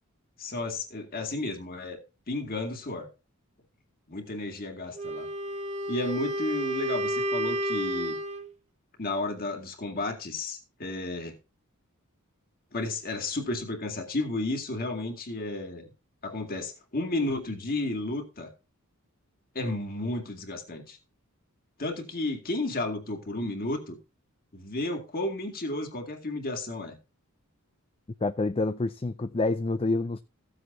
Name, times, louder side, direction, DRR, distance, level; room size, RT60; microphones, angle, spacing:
voice 1, 0.4-2.0 2.3-3.1 4.1-5.3 5.9-8.2 9.0-11.3 12.7-15.9 16.2-18.5 19.5-21.0 21.8-24.0 24.5-27.0, left 2 dB, 45° left, 2.4 m, -32 dB
Wind instrument woodwind instrument, 4.9-8.5, equal, 30° right, 1.5 m, -31 dB
voice 2, 28.2-30.2, left 2 dB, 25° left, 0.5 m, -27 dB
15.0 x 7.9 x 2.7 m
head